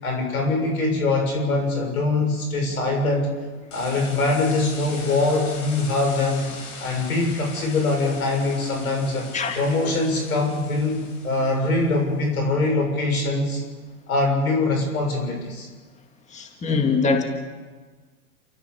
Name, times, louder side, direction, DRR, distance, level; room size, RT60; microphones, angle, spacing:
voice 1, 0.0-3.3 3.7-6.5 6.8-9.3 9.6-11.0 11.2-13.6 14.1-15.7, left 2 dB, 90° left, 2 dB, 7.5 m, -23 dB
sound 1, 3.7-11.9, left 4 dB, 40° left, 6.4 m, -40 dB
voice 2, 16.3-17.2, left 4 dB, 15° left, 4 dB, 2.1 m, -22 dB
29.0 x 14.0 x 7.1 m, 1.3 s
hypercardioid pair, 115°, 42 cm